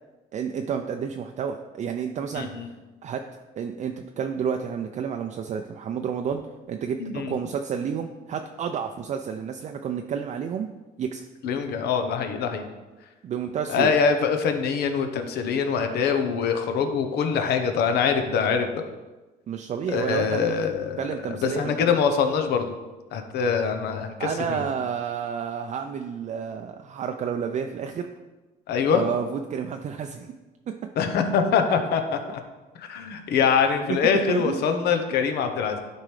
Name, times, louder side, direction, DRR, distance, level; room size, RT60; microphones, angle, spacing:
voice 1, 0.3-2.5 3.0-3.2 3.6-6.4 6.7-10.7 11.0-11.2 13.2-13.9 19.5-20.5 21.0-21.9 24.2-28.1 28.8-30.3 30.7-30.8 33.9-34.0 34.3-34.6, right 7 dB, 45° right, 4 dB, 0.5 m, -30 dB
voice 2, 2.3-2.7 7.0-7.3 11.4-12.7 13.7-18.8 19.9-21.0 21.3-22.7 23.1-24.6 28.7-29.0 31.0-32.4 32.8-35.8, left 6 dB, 75° left, 6 dB, 0.9 m, -24 dB
11.5 x 4.6 x 3.3 m, 1.2 s
cardioid pair, 110°, 17 cm